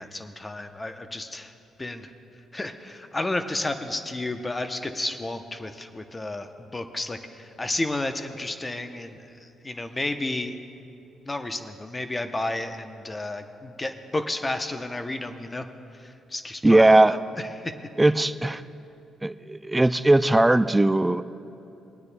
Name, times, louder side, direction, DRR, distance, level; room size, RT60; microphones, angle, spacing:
voice 1, 0.0-1.5 1.8-2.1 2.5-10.6 11.2-15.7 16.0-17.7, left 2 dB, 20° left, 7 dB, 0.7 m, -32 dB
voice 2, 16.6-17.2 18.0-18.6 19.2-21.2, right 2 dB, 15° right, 11 dB, 0.3 m, -19 dB
24.5 x 9.4 x 2.2 m, 2.9 s
cardioid pair, 90°, 0 cm